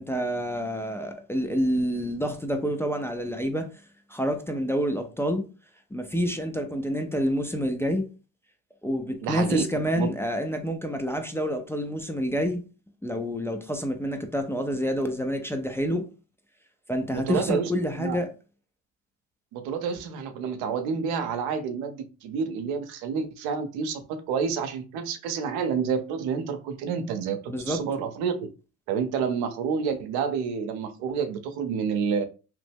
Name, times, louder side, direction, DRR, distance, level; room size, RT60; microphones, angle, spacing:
voice 1, 0.0-3.7 4.1-5.4 5.9-8.0 8.8-12.6 13.0-16.0 16.9-18.3 27.5-27.8, equal, 5° left, 0.4 m, -28 dB
voice 2, 9.2-10.1 17.1-17.7 18.0-18.2 19.5-28.4 28.9-32.3, right 6 dB, 80° right, 0.6 m, -29 dB
3.0 x 2.0 x 3.3 m
supercardioid pair, 85°, 37 cm